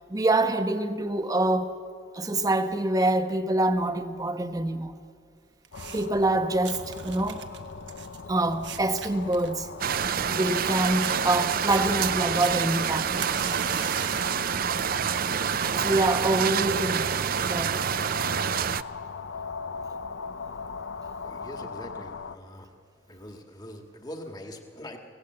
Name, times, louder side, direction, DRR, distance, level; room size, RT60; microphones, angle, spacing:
voice 1, 0.1-1.7 2.1-4.9 5.9-7.5 8.3-9.7 10.3-13.2 15.7-17.1 17.4-17.9, right 2 dB, 20° right, 1.0 m, -25 dB
sound 1, 5.6-6.2 6.6-10.7 11.0-11.1 11.6-11.8 12.4-14.4 14.8-15.2 16.0-16.1, right 9 dB, 70° right, 1.2 m, -40 dB
sound 2, 5.7-22.4, left 5 dB, 90° left, 0.7 m, -39 dB
sound 3, 9.8-18.8, right 8 dB, 50° right, 0.5 m, -27 dB
voice 2, 21.2-22.7 23.1-25.0, equal, 25° left, 1.9 m, -42 dB
25.5 x 17.5 x 7.9 m
head